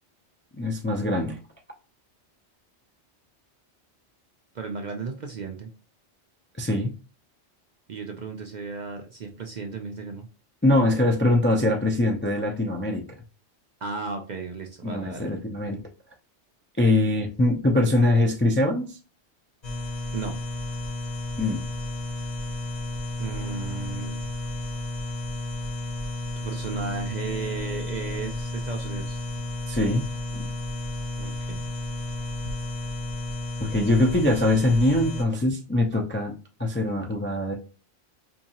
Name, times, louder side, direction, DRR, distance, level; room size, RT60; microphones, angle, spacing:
voice 1, 0.6-1.4 6.6-6.9 10.6-13.2 14.8-15.8 16.8-19.0 21.4-21.6 29.7-30.0 30.3-30.5 33.6-36.3 36.6-37.5, left 1 dB, 20° left, 1 dB, 0.3 m, -23 dB
voice 2, 4.5-5.7 7.9-10.3 13.8-15.3 20.1-20.3 23.2-24.2 26.4-29.2 31.2-31.6, right 4 dB, 55° right, 3 dB, 0.5 m, -34 dB
sound 1, 19.6-35.2, left 2 dB, 40° left, 1.0 m, -32 dB
4.4 x 2.7 x 2.8 m, 0.34 s
omnidirectional pair, 1.2 m